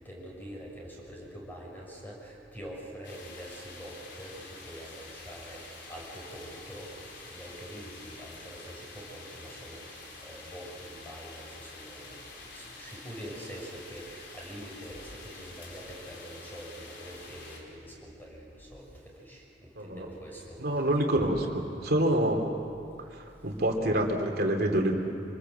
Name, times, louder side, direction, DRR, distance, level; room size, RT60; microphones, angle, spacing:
voice 1, 0.0-9.8 10.2-21.3 23.5-23.6, equal, 10° left, -2 dB, 6.3 m, -45 dB
sound 1, 3.0-17.6, left 3 dB, 90° left, 4.1 m, -47 dB
voice 2, 20.6-21.4 21.8-22.4 23.1-24.9, right 1 dB, 60° right, 2 dB, 2.7 m, -26 dB
26.0 x 20.0 x 7.9 m, 2.5 s
head